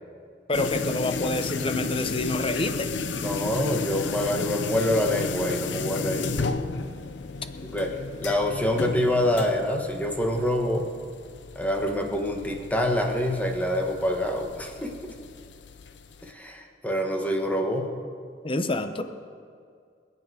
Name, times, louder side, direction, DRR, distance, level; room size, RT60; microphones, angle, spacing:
sound 1, 0.5-16.3, left 4 dB, 80° left, 0.7 m, -33 dB
voice 1, 0.5-2.9 18.4-19.0, left 2 dB, 30° left, 9 dB, 0.8 m, -27 dB
voice 2, 3.2-6.4 7.7-7.9 8.2-10.9 11.5-14.9 16.2-17.9, left 1 dB, 10° left, 2 dB, 1.5 m, -26 dB
25.5 x 8.6 x 4.9 m, 2.2 s
head